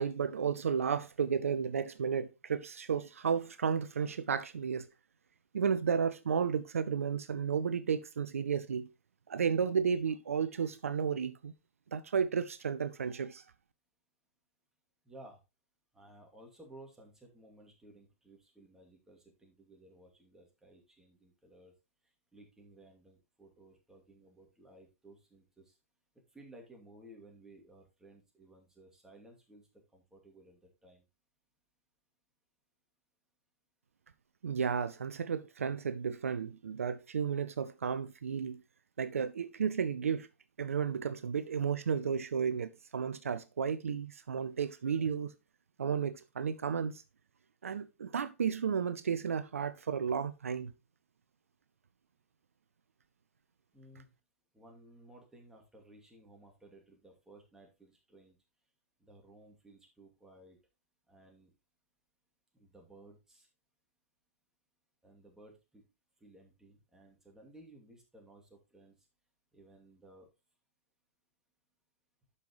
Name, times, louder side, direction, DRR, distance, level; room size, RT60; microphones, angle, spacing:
voice 1, 0.0-4.9 5.5-8.9 9.3-11.5 11.9-13.4 34.4-38.6 39.0-40.3 40.6-45.3 45.8-47.0 47.6-50.7, right 6 dB, 75° right, 0.5 m, -33 dB
voice 2, 15.0-15.4 15.9-21.7 22.0-25.8 26.3-31.0 53.7-54.1 54.5-58.4 59.0-60.6 61.1-61.5 62.5-63.5 65.0-65.8 66.2-69.1 69.5-70.3, right 1 dB, 5° right, 2.4 m, -57 dB
11.5 x 5.6 x 3.0 m
figure-of-eight pair, 110°, 8 cm